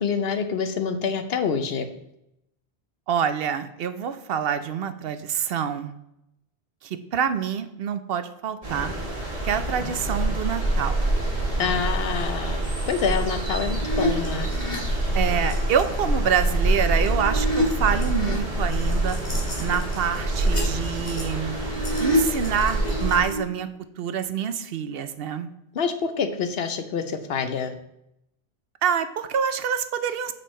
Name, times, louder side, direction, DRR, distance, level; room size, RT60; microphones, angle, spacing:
voice 1, 0.0-1.9 11.6-14.5 25.8-27.7, left 6 dB, 70° left, 9 dB, 1.0 m, -27 dB
voice 2, 3.1-5.9 6.8-8.9 9.4-11.0 15.1-19.2 19.6-21.6 22.0-23.7 24.0-25.5 28.8-30.3, right 7 dB, 70° right, 11 dB, 0.8 m, -26 dB
sound 1, 8.6-23.2, right 1 dB, 35° right, 1.9 m, -26 dB
sound 2, 13.8-15.8 16.4-18.3 18.7-23.4, left 1 dB, 30° left, 1.8 m, -30 dB
7.2 x 5.3 x 4.3 m, 0.83 s
omnidirectional pair, 1.1 m